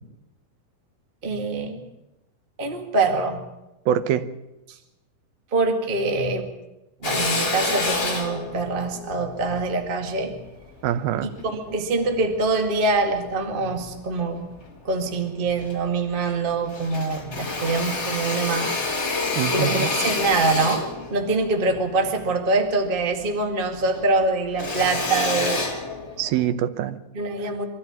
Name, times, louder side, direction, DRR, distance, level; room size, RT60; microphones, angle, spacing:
voice 1, 1.2-1.8 2.6-3.4 4.7-4.8 5.5-6.5 7.0-10.3 11.2-14.4 14.8-18.7 19.4-25.6 27.1-27.6, right 3 dB, 20° right, 1.5 m, -24 dB
voice 2, 3.9-4.3 10.8-11.3 19.3-19.9 26.2-27.0, right 10 dB, 90° right, 2.9 m, -24 dB
Drill, 7.0-11.6 12.1-13.3 13.8-14.7 15.1-15.2 15.4-16.4 16.7-23.4 23.6-26.5, left 3 dB, 25° left, 2.0 m, -28 dB
24.5 x 14.0 x 8.9 m
omnidirectional pair, 4.2 m